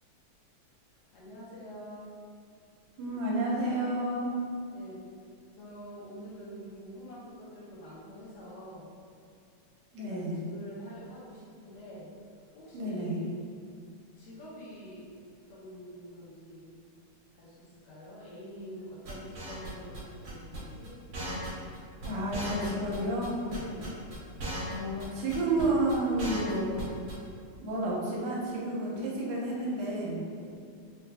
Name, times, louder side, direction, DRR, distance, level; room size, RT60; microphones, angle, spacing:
voice 1, 1.1-2.1 4.7-5.0 5.5-8.9 10.1-12.1 12.5-13.4 14.2-15.2 15.5-16.7 17.4-21.0 23.4-24.2 30.2-30.8, equal, 75° left, -8 dB, 2.3 m, -47 dB
voice 2, 3.0-4.3 9.9-10.4 12.7-13.2 22.0-23.4 24.7-26.7 27.6-30.2, right 1 dB, 80° right, -5 dB, 2.4 m, -30 dB
sound 1, 19.1-20.0 20.2-20.6 20.8-20.9 21.1-21.8 22.0-22.1 22.3-23.3 23.5-24.7 25.0-25.1 25.3-25.6 25.9-26.8 27.1-27.2, right 1 dB, 55° right, 1.5 m, -37 dB
5.9 x 2.4 x 2.2 m, 2.3 s
omnidirectional pair, 4.1 m